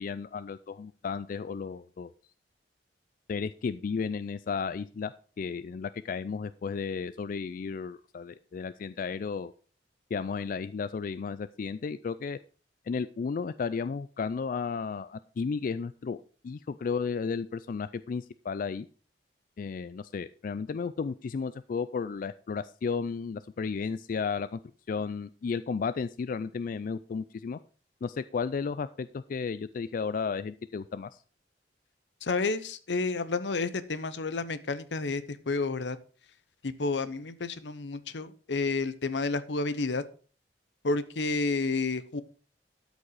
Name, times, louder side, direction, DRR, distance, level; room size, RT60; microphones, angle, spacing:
voice 1, 0.0-2.1 3.3-5.1 5.4-9.5 10.1-12.4 12.9-18.9 19.6-24.6 24.9-27.6 28.0-31.2, left 5 dB, 50° left, 14 dB, 0.3 m, -33 dB
voice 2, 32.2-36.0 36.6-40.0 40.8-42.2, left 3 dB, 85° left, 14 dB, 0.8 m, -30 dB
12.0 x 5.2 x 4.7 m, 0.39 s
head